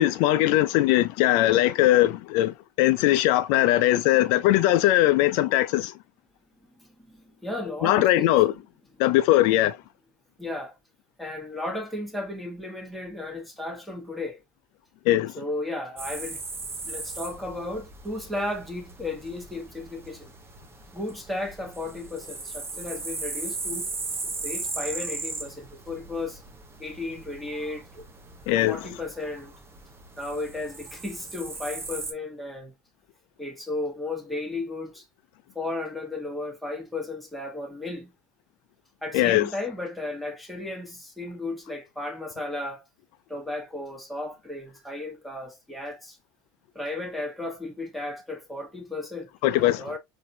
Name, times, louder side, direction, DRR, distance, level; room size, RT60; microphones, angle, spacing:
voice 1, 0.0-5.9 7.8-8.5 9.0-9.8 15.1-15.3 28.5-28.8 39.1-39.5 49.4-49.8, left 15 dB, 65° left, 0.4 m, -20 dB
voice 2, 6.8-8.6 10.4-10.8 11.2-14.4 15.3-16.4 16.8-20.3 20.9-23.9 24.4-26.4 26.8-28.0 28.7-29.5 30.2-32.7 33.4-35.0 35.5-38.1 39.0-42.8 43.3-46.2 46.7-50.0, left 2 dB, ahead, 1.4 m, -34 dB
sound 1, 16.0-32.1, right 3 dB, 25° right, 1.0 m, -38 dB
4.0 x 2.6 x 2.7 m
hypercardioid pair, 85°, 10 cm